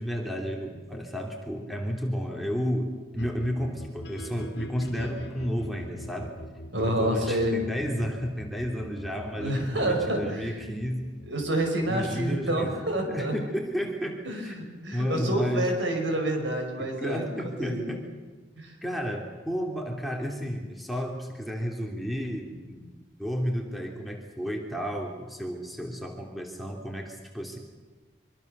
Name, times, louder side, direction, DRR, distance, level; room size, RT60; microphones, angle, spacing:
voice 1, 0.0-6.3 6.8-11.1 11.9-12.7 13.1-14.6 14.9-15.7 16.8-18.1 18.8-27.6, equal, ahead, 1 dB, 3.0 m, -32 dB
sound 1, 3.2-13.2, equal, 65° left, 2.1 m, -44 dB
voice 2, 6.7-7.5 9.4-10.5 11.3-13.3 14.3-17.8 18.6-18.7, right 1 dB, 80° right, 3 dB, 5.9 m, -28 dB
25.0 x 23.5 x 6.9 m, 1.3 s
head